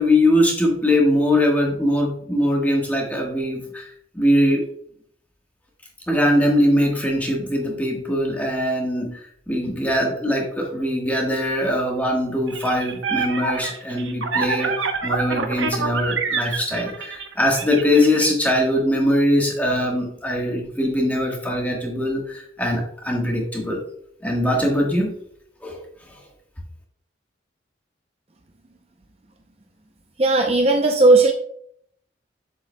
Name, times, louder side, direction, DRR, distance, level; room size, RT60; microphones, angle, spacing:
voice 1, 0.0-4.6 6.1-9.2 9.5-23.8 24.2-25.1 25.6-25.8, left 1 dB, 10° left, 0 dB, 1.3 m, -21 dB
sound 1, 12.5-18.3, right 5 dB, 85° right, 0.9 m, -26 dB
voice 2, 30.2-31.3, right 2 dB, 30° right, 3 dB, 0.5 m, -15 dB
7.7 x 7.4 x 2.2 m, 0.67 s
head